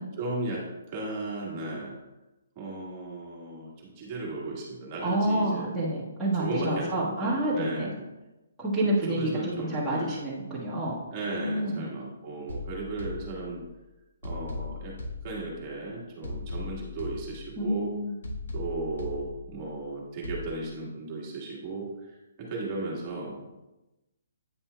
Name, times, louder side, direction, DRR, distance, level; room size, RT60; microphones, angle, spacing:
voice 1, 0.2-1.9 2.5-5.7 6.3-8.0 9.1-10.2 11.1-13.6 14.2-15.0 15.2-18.0 18.5-23.5, right 2 dB, 20° right, -4 dB, 1.5 m, -35 dB
voice 2, 5.0-7.9 8.6-11.0 11.3-11.9 17.6-18.1, right 1 dB, 5° right, -10 dB, 1.4 m, -28 dB
sound 1, 12.5-13.8 14.2-15.8 16.2-17.8 18.2-19.8 20.2-20.5, left 3 dB, 85° left, 1.3 m, -38 dB
8.9 x 5.7 x 2.2 m, 1.0 s
hypercardioid pair, 170°, 0 cm